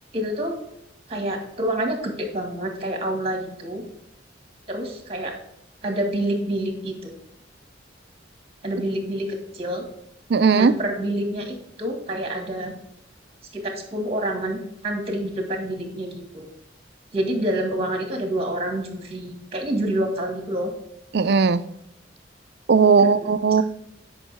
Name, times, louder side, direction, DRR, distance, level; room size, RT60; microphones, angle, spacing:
voice 1, 0.1-0.5 1.1-3.8 4.7-5.3 5.8-7.1 8.6-9.8 10.5-12.7 13.5-16.5 17.1-20.7 23.0-23.3, right 1 dB, 30° right, 3 dB, 1.8 m, -27 dB
voice 2, 10.3-10.7 21.1-21.6 22.7-23.6, right 5 dB, 60° right, 13 dB, 0.4 m, -17 dB
9.1 x 5.5 x 3.4 m, 0.81 s
head